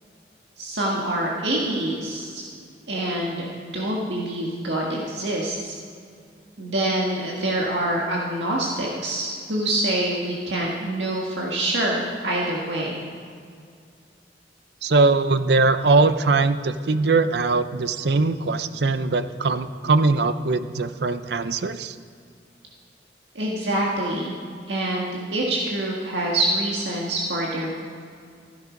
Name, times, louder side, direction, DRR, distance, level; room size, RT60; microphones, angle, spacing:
voice 1, 0.6-2.4 2.9-5.8 6.6-13.0 23.4-24.3 24.7-27.7, right 1 dB, 85° right, -3 dB, 1.8 m, -26 dB
voice 2, 14.8-21.9, right 3 dB, 65° right, 12 dB, 0.6 m, -21 dB
14.5 x 12.0 x 5.2 m, 2.3 s
head